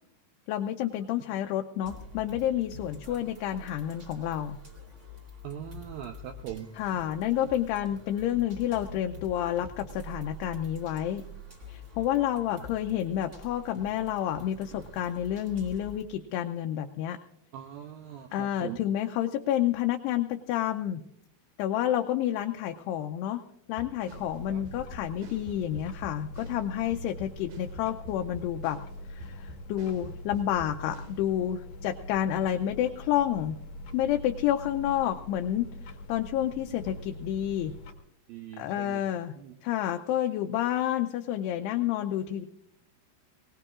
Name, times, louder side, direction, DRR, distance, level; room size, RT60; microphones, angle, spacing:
voice 1, 0.5-4.6 6.7-11.2 11.7-17.2 18.3-21.0 21.6-23.4 23.7-28.8 29.1-33.6 33.9-35.7 36.1-37.7 38.6-39.3 39.6-42.5, left 11 dB, 80° left, 4 dB, 2.5 m, -29 dB
sound 1, 1.8-16.0, equal, 30° right, 1.3 m, -46 dB
voice 2, 5.4-6.7 17.5-18.8 24.5-24.6 38.3-39.0 39.4-39.5, right 10 dB, 80° right, 4 dB, 2.1 m, -41 dB
sound 2, 23.7-31.2, right 1 dB, 60° right, 3.6 m, -47 dB
sound 3, 24.1-37.9, left 1 dB, 60° left, 1.8 m, -43 dB
22.0 x 19.0 x 2.4 m, 0.81 s
omnidirectional pair, 5.1 m